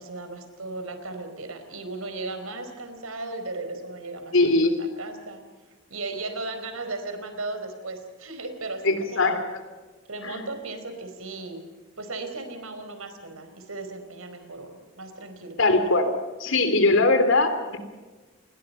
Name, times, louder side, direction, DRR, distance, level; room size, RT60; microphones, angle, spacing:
voice 1, 0.0-4.4 4.8-5.4 5.9-9.5 10.1-11.6 12.0-15.6, right 2 dB, 85° right, 8 dB, 4.6 m, -36 dB
voice 2, 4.3-4.7 8.8-9.4 10.2-10.4 15.6-16.1 16.4-17.8, left 2 dB, 65° left, 8 dB, 3.1 m, -21 dB
29.5 x 21.5 x 5.7 m, 1.3 s
head